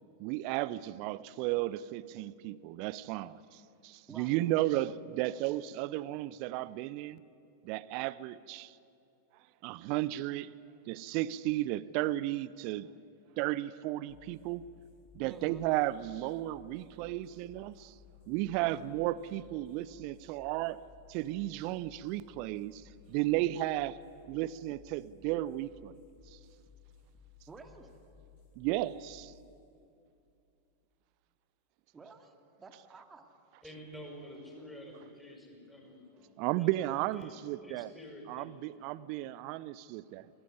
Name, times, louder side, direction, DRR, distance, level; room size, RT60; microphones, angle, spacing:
voice 1, 0.2-7.2 7.6-8.7 9.6-10.5 10.9-12.9 13.4-14.6 15.1-17.9 18.3-20.8 21.1-24.0 24.3-26.0 28.6-29.3 36.4-37.9 38.3-40.3, right 16 dB, 45° right, 0.5 m, -34 dB
sound 1, 14.1-31.1, left 6 dB, 50° left, 2.8 m, -59 dB
voice 2, 15.2-15.7 18.5-18.9 27.5-28.0 31.9-33.4, right 3 dB, 15° right, 2.3 m, -52 dB
voice 3, 33.6-38.5, equal, 5° left, 6.0 m, -49 dB
22.0 x 18.5 x 9.8 m
figure-of-eight pair, 90°, 0 cm